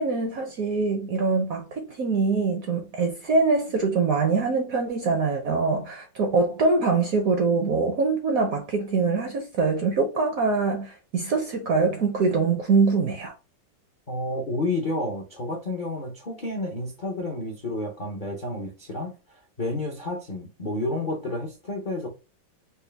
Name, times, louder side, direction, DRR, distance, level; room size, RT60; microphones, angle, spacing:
voice 1, 0.0-13.3, right 4 dB, 65° right, 0.9 m, -24 dB
voice 2, 14.1-22.1, left 2 dB, 60° left, 0.5 m, -30 dB
4.3 x 2.3 x 3.3 m
omnidirectional pair, 2.1 m